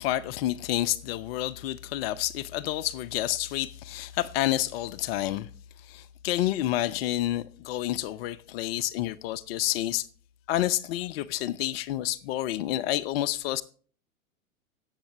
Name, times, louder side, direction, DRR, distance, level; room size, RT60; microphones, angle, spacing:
voice 1, 0.0-5.5 5.9-10.1 10.5-13.6, left 14 dB, 45° left, 0.6 m, -29 dB
17.5 x 8.1 x 2.9 m
hypercardioid pair, 105°, 43 cm